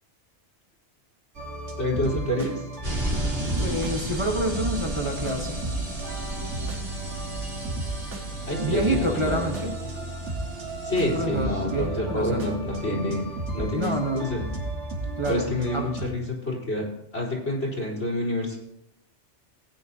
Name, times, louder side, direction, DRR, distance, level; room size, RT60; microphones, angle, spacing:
sound 1, 1.4-16.1, right 2 dB, 75° right, 1.8 m, -34 dB
voice 1, 1.8-2.7 8.4-9.6 10.8-13.2 13.5-14.4 15.3-16.9 17.1-18.6, left 1 dB, 75° left, -3 dB, 4.0 m, -28 dB
sound 2, 2.8-11.2, equal, 55° right, 2.7 m, -34 dB
voice 2, 3.6-5.6 8.6-9.8 11.0-12.6 13.7-14.3 15.2-15.9, right 1 dB, 25° right, 1 dB, 1.2 m, -28 dB
18.0 x 9.4 x 2.8 m, 0.82 s
omnidirectional pair, 1.2 m